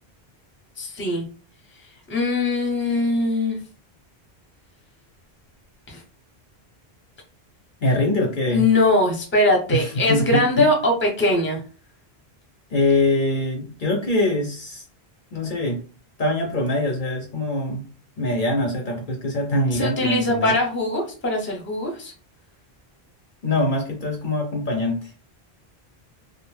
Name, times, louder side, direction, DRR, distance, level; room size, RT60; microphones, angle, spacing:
voice 1, 0.8-1.2 2.1-3.6 5.9-6.0 8.5-11.6 19.7-22.1, left 2 dB, 15° left, 0 dB, 0.6 m, -21 dB
voice 2, 7.8-8.6 9.7-10.7 12.7-14.8 15.3-15.8 16.2-17.8 18.2-20.6 23.4-25.1, left 2 dB, 60° left, 2 dB, 0.7 m, -23 dB
2.5 x 2.0 x 3.2 m, 0.37 s
omnidirectional pair, 1.1 m